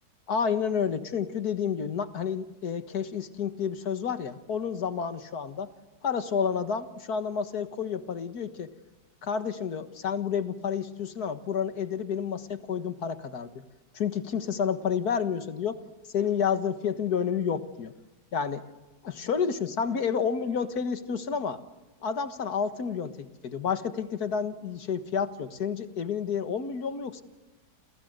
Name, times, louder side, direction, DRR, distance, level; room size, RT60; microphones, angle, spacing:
voice 1, 0.3-5.7 6.0-8.7 9.2-13.5 13.9-15.8 16.1-17.9 18.3-18.6 19.0-21.6 22.0-27.2, left 7 dB, 65° left, 10 dB, 1.9 m, -30 dB
29.5 x 28.5 x 6.6 m, 1.1 s
omnidirectional pair, 1.8 m